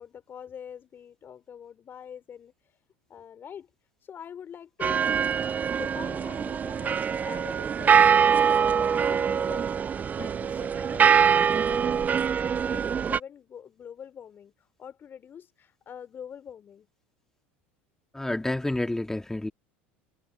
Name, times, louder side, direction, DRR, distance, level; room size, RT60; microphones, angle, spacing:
voice 1, 0.0-2.8 3.1-3.7 4.0-5.2 5.7-8.0 8.7-16.9, left 8 dB, 35° left, 3.8 m, -44 dB
sound 1, 4.8-13.2, right 7 dB, 25° right, 0.3 m, -23 dB
voice 2, 18.1-19.5, left 1 dB, 10° left, 2.4 m, -29 dB
hypercardioid pair, 85°, 6 cm